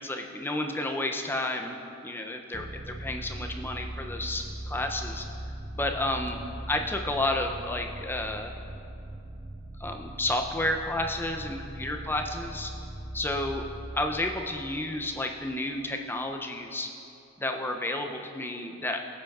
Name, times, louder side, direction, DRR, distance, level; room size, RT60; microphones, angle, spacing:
voice 1, 0.0-1.8 2.0-5.2 5.7-6.4 6.7-8.5 9.8-12.7 13.1-13.6 13.9-16.9 17.4-19.0, left 1 dB, 10° left, 4 dB, 0.4 m, -31 dB
sound 1, 2.5-16.0, right 1 dB, 35° right, 0.7 m, -40 dB
16.0 x 7.7 x 2.3 m, 2.8 s
head